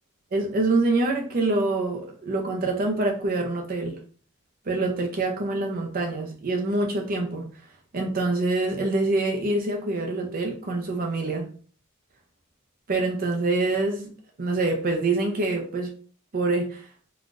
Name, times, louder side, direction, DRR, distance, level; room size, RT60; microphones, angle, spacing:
voice 1, 0.3-4.0 4.7-7.5 7.9-11.5 12.9-14.1 14.4-15.9 16.3-16.9, right 2 dB, 40° right, 0.5 m, -25 dB
3.7 x 2.3 x 2.5 m
head